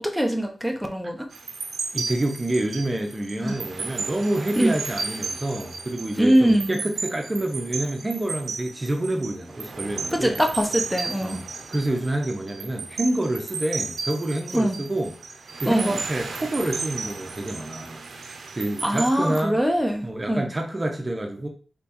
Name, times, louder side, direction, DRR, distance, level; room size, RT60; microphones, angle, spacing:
voice 1, 0.1-1.3 3.4-3.6 4.6-4.7 6.2-6.8 10.1-11.4 14.5-14.8 15.6-16.0 18.8-20.5, right 1 dB, ahead, 3 dB, 0.9 m, -22 dB
sound 1, 1.3-19.4, right 4 dB, 80° right, 0.6 m, -34 dB
voice 2, 1.9-10.4 11.2-15.2 15.6-18.0 18.6-19.6 20.0-21.5, right 1 dB, 30° right, 2 dB, 0.8 m, -27 dB
4.3 x 3.4 x 3.0 m, 0.38 s
cardioid pair, 50°, 0 cm